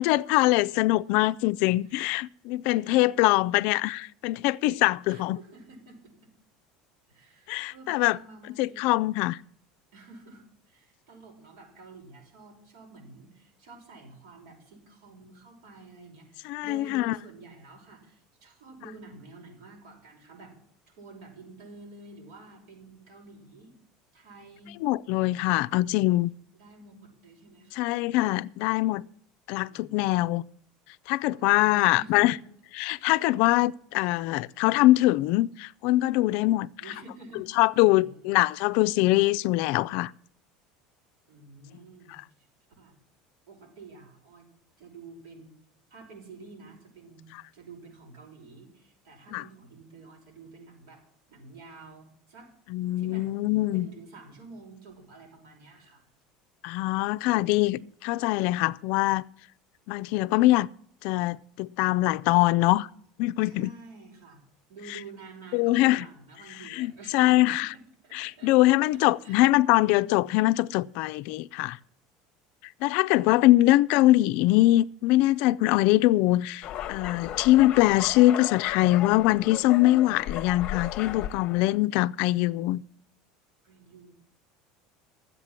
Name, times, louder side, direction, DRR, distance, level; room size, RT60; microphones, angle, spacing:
voice 1, 0.0-5.4 7.5-8.2 8.6-9.4 16.4-17.2 24.8-26.3 27.8-29.1 29.5-30.4 31.1-32.3 32.8-36.7 37.6-40.1 42.1-42.2 49.3-49.4 52.7-53.9 56.6-59.2 59.9-60.7 61.0-62.9 63.2-63.7 65.5-66.1 66.7-67.7 68.1-71.8 72.8-82.8, left 17 dB, 60° left, 0.4 m, -23 dB
voice 2, 2.9-3.7 5.1-6.1 7.1-9.0 9.9-20.5 20.9-23.7 24.1-24.8 25.4-25.6 26.6-27.9 29.7-30.4 31.4-32.4 36.8-37.4 37.8-38.4 41.3-42.2 42.8-42.9 43.5-44.5 44.8-45.6 45.9-51.0 51.3-52.5 53.0-56.0 63.4-64.4 64.7-68.5 69.2-69.4 73.2-73.4 83.6-84.1, right 3 dB, 80° right, 5.9 m, -49 dB
sound 1, 76.6-81.8, left 11 dB, 40° left, 0.9 m, -36 dB
12.5 x 8.2 x 7.3 m
cardioid pair, 150°, 2 cm